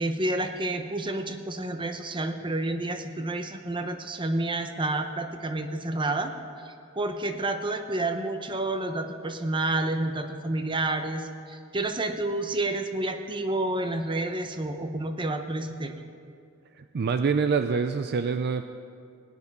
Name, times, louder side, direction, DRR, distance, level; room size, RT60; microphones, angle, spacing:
voice 1, 0.0-6.3 6.6-15.9, right 2 dB, 25° right, 7 dB, 0.8 m, -29 dB
voice 2, 16.8-18.6, right 5 dB, 50° right, 9 dB, 0.4 m, -26 dB
17.5 x 9.9 x 5.4 m, 2.4 s
head